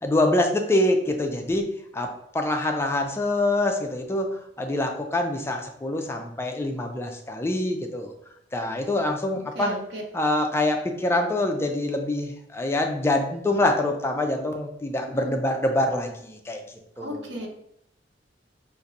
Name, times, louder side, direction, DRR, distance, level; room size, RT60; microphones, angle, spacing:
voice 1, 0.0-1.7 1.9-4.3 4.6-8.1 8.5-9.8 10.1-16.6 17.0-17.3, left 1 dB, 15° left, 4 dB, 0.3 m, -25 dB
voice 2, 9.5-10.0 15.1-15.3 17.0-17.5, right 1 dB, 75° right, 2 dB, 0.6 m, -34 dB
2.5 x 2.5 x 4.1 m, 0.74 s
head